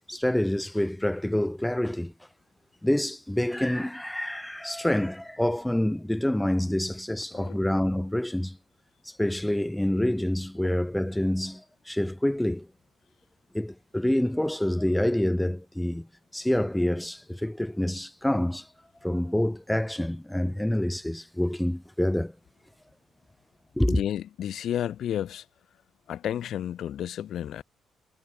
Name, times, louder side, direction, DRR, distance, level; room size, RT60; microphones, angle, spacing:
voice 1, 0.0-2.1 2.8-8.6 9.0-12.7 13.5-16.1 16.3-18.7 19.0-22.3 23.8-24.0, left 1 dB, 5° left, 0.4 m, -27 dB
voice 2, 23.9-25.4 26.1-27.6, left 10 dB, 70° left, 0.9 m, -31 dB
cardioid pair, 90°, 0 cm